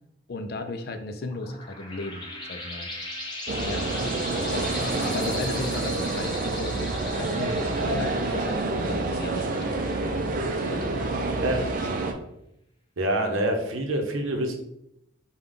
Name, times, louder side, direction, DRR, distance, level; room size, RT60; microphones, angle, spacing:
voice 1, 0.3-2.9 3.6-3.9 4.4-10.0 10.7-12.1, left 2 dB, 50° left, 7 dB, 0.4 m, -36 dB
sound 1, 1.1-10.3, left 1 dB, 20° left, 0.9 m, -38 dB
sound 2, 3.5-12.1, right 2 dB, 40° right, 0.4 m, -28 dB
voice 2, 13.0-14.5, right 1 dB, 90° right, 3 dB, 0.8 m, -26 dB
5.2 x 2.3 x 3.6 m, 0.80 s
head